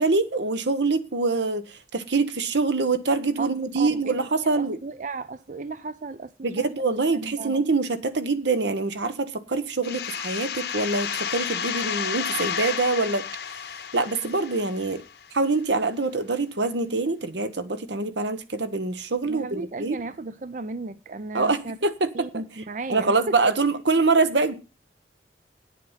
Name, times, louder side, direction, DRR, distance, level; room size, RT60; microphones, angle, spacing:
voice 1, 0.0-4.8 6.4-13.2 13.9-15.0 15.3-20.0 21.3-22.3 22.9-24.5, right 3 dB, 75° right, 1.2 m, -25 dB
voice 2, 3.8-6.6 7.1-7.6 19.2-21.8 22.1-23.4 24.0-24.1, right 3 dB, 45° right, 0.5 m, -35 dB
sound 1, 9.8-15.4, left 8 dB, 65° left, 1.0 m, -31 dB
9.6 x 7.6 x 5.7 m
head